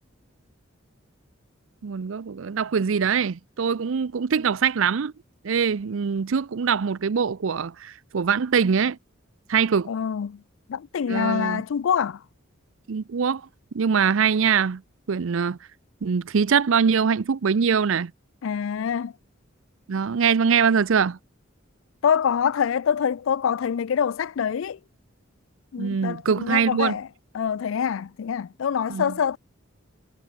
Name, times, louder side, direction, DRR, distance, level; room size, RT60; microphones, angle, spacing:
voice 1, 1.8-5.1 5.4-9.0 9.5-9.9 11.1-11.6 12.9-13.4 13.7-14.8 15.1-15.6 16.0-18.1 19.9-21.2 25.8-27.0 28.9-29.2, right 6 dB, 75° right, 0.5 m, -23 dB
voice 2, 9.9-10.4 10.7-12.2 18.4-19.1 22.0-24.8 25.7-27.1 27.3-29.4, left 7 dB, 75° left, 0.4 m, -25 dB
head